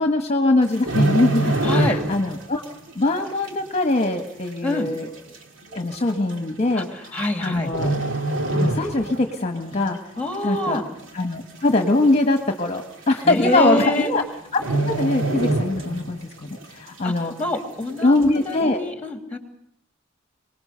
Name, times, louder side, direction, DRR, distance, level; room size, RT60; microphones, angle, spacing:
voice 1, 0.0-2.6 2.9-5.1 5.7-7.9 8.5-10.0 10.4-10.8 11.1-14.2 14.5-17.3 18.0-18.8, left 2 dB, 30° left, 4 dB, 1.4 m, -22 dB
sound 1, 0.6-2.4 2.6-2.9 3.5-3.6 4.5-4.6 4.8-4.9 5.7-5.9 7.0-7.4 7.7-9.3 9.6-9.9 10.3-10.9 11.2-11.3 11.5-11.6 12.1-12.2 13.1-13.2 13.5-13.8 14.1-14.2 14.6-16.2 16.6-16.7, right 2 dB, 70° right, 2.5 m, -24 dB
voice 2, 1.6-2.0 4.6-4.9 6.7-6.8 7.1-7.7 10.2-10.8 13.2-14.1 17.0-17.1 17.4-19.4, left 1 dB, 10° left, 5 dB, 2.8 m, -25 dB
25.0 x 19.5 x 6.8 m, 0.71 s
head